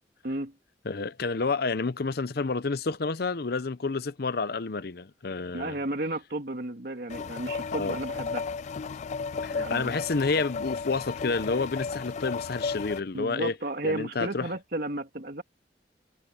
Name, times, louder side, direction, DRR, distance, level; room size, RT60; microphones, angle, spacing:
voice 1, 0.8-5.8 7.7-8.0 9.4-13.6 13.8-14.5, left 4 dB, 60° left, 0.7 m, -29 dB
voice 2, 5.5-8.4 9.5-9.9 13.1-15.4, right 2 dB, 60° right, 2.1 m, -33 dB
sound 1, 7.1-13.0, left 5 dB, 40° left, 0.3 m, -34 dB
head